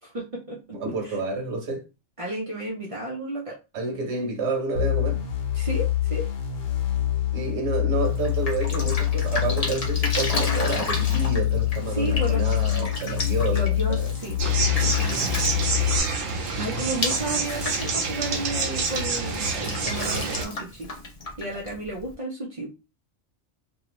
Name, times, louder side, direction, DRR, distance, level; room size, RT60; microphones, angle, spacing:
voice 1, 0.1-0.6 1.0-1.2 2.2-3.6 5.5-6.3 11.9-12.4 13.5-14.4 14.8-15.4 16.6-20.9 21.4-22.7, right 1 dB, 50° right, 0.4 m, -32 dB
voice 2, 0.7-1.8 3.7-5.2 7.3-14.1 16.6-16.8, right 3 dB, 65° right, 1.0 m, -29 dB
sound 1, 4.8-16.0, left 12 dB, 85° left, 1.1 m, -25 dB
Drip, 8.0-22.1, left 2 dB, 45° left, 0.5 m, -34 dB
sound 2, 14.4-20.5, right 4 dB, 85° right, 1.1 m, -27 dB
2.6 x 2.3 x 3.0 m
omnidirectional pair, 1.3 m